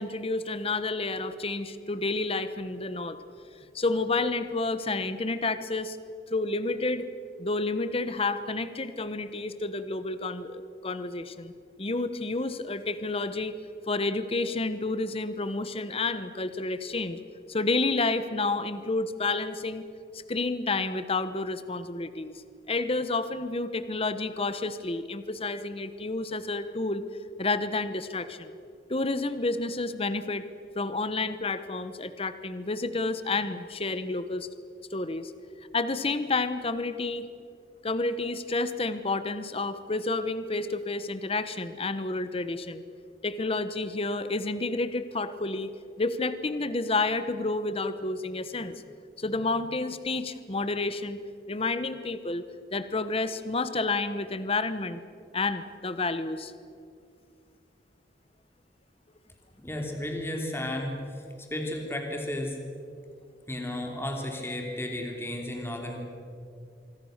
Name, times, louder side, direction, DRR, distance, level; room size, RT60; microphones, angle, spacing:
voice 1, 0.0-3.2 3.7-6.0 6.3-7.1 7.4-11.5 11.8-13.5 13.9-17.2 17.5-19.8 20.1-22.4 22.7-27.0 27.4-28.6 28.9-30.4 30.7-34.5 34.9-35.3 35.7-37.3 37.8-42.8 43.2-45.7 46.0-48.8 49.2-51.2 51.5-52.4 52.7-55.0 55.3-56.5, left 3 dB, 30° left, 12 dB, 1.1 m, -30 dB
voice 2, 59.6-61.0 61.5-62.6 63.5-66.0, left 1 dB, 15° left, 2 dB, 3.1 m, -33 dB
26.0 x 23.5 x 6.6 m, 2.4 s
head